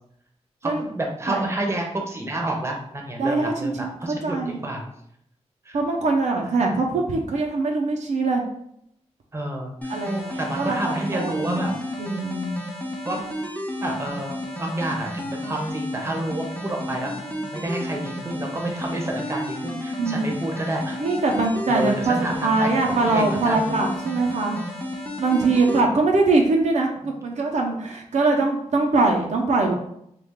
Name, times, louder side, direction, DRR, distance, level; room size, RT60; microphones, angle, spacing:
voice 1, 0.6-4.8 5.7-5.8 9.3-9.7 10.4-11.7 13.0-13.3 13.8-21.0 21.7-23.7, right 1 dB, 20° right, 1 dB, 0.7 m, -29 dB
voice 2, 3.2-3.9 4.2-4.6 5.7-8.4 9.9-11.7 12.0-12.6 20.0-20.3 21.0-24.6 25.2-29.7, right 3 dB, 75° right, 1 dB, 0.6 m, -22 dB
sound 1, 9.8-25.8, left 1 dB, 10° left, 0.8 m, -32 dB
3.2 x 2.3 x 3.5 m, 0.74 s
cardioid pair, 70°, 12 cm